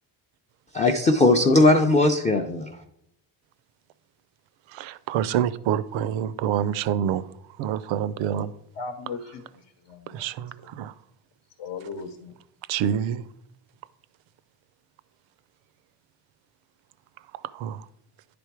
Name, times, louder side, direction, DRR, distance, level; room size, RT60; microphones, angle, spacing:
voice 1, 0.7-2.8, left 2 dB, 20° left, 0.3 m, -19 dB
voice 2, 4.7-7.2 7.6-8.5 10.1-10.9 12.7-13.3 17.5-17.8, right 9 dB, 85° right, 0.5 m, -27 dB
voice 3, 8.8-9.4 9.9-10.2 11.6-12.3, left 4 dB, 75° left, 0.9 m, -37 dB
10.5 x 3.5 x 4.6 m
cardioid pair, 130°, 45 cm